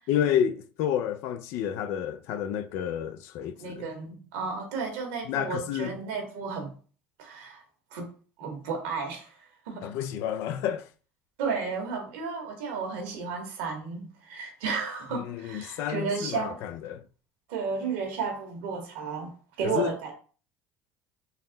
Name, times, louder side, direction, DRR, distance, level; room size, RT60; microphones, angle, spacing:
voice 1, 0.1-3.9 5.3-6.0 9.8-10.9 15.1-17.0 19.6-19.9, left 9 dB, 70° left, 0.4 m, -30 dB
voice 2, 3.6-6.7 7.2-7.6 7.9-8.1 8.4-9.3 9.6-9.9 11.4-16.6 17.5-20.1, right 5 dB, 80° right, 1.3 m, -33 dB
4.0 x 2.1 x 3.8 m
supercardioid pair, 90°, 5 cm